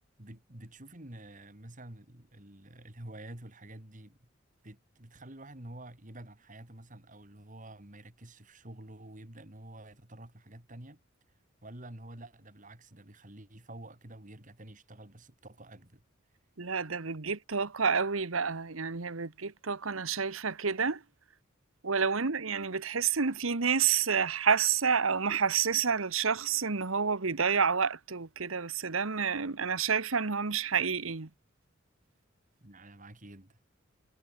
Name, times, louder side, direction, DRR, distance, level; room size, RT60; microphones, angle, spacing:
voice 1, 0.2-4.2 4.6-11.0 11.6-16.0 32.6-33.6, right 1 dB, 40° right, 3.1 m, -49 dB
voice 2, 16.6-21.0 21.8-31.3, right 6 dB, 90° right, 1.3 m, -29 dB
head